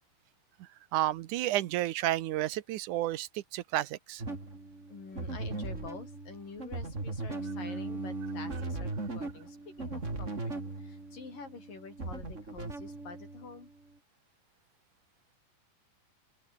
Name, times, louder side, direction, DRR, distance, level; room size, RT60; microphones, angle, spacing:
voice 1, 0.9-4.2, right 15 dB, 70° right, 2.2 m, -31 dB
sound 1, 4.2-13.7, right 2 dB, 20° right, 4.0 m, -38 dB
voice 2, 4.9-10.5 10.8-13.7, left 4 dB, 70° left, 7.2 m, -47 dB
open air
omnidirectional pair, 4.0 m